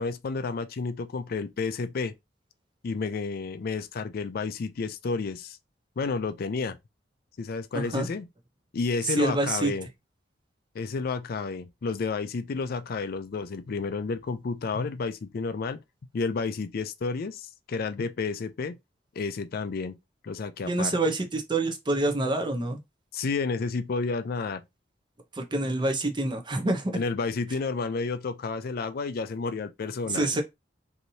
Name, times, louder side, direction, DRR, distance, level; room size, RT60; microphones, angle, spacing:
voice 1, 0.0-2.1 2.8-5.6 6.0-6.8 7.4-8.3 8.7-9.9 10.7-15.8 16.1-18.8 19.2-20.0 20.2-21.0 23.1-24.6 26.9-30.4, left 4 dB, 55° left, 0.4 m, -31 dB
voice 2, 7.7-8.1 9.2-9.7 20.7-22.8 25.3-26.9 30.1-30.4, right 2 dB, 25° right, 0.7 m, -27 dB
3.1 x 2.7 x 2.7 m
head